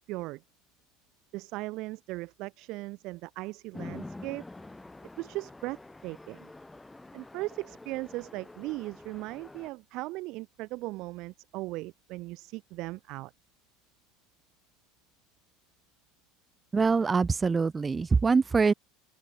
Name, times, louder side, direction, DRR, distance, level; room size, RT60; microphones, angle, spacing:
voice 1, 0.1-0.4 1.3-4.4 5.2-6.5 7.1-13.3, right 20 dB, 60° right, 2.4 m, -38 dB
Chatter / Traffic noise roadway noise / Train, 3.7-9.7, left 2 dB, 10° left, 3.4 m, -46 dB
voice 2, 16.7-18.7, right 4 dB, 20° right, 1.0 m, -24 dB
open air
hypercardioid pair, 75°, 0 cm